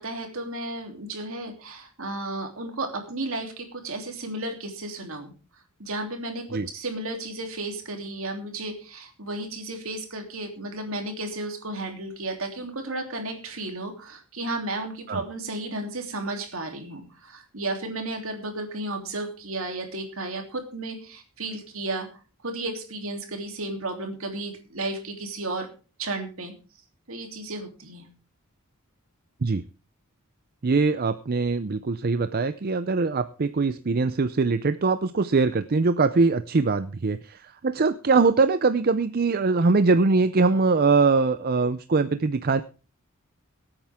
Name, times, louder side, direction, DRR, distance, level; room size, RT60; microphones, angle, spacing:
voice 1, 0.0-5.3 5.8-22.1 22.4-25.7 26.0-26.5 27.1-28.1, right 2 dB, 65° right, 4 dB, 3.1 m, -33 dB
voice 2, 30.6-42.6, right 4 dB, 45° right, 11 dB, 0.5 m, -22 dB
23.0 x 8.9 x 3.6 m, 0.34 s
head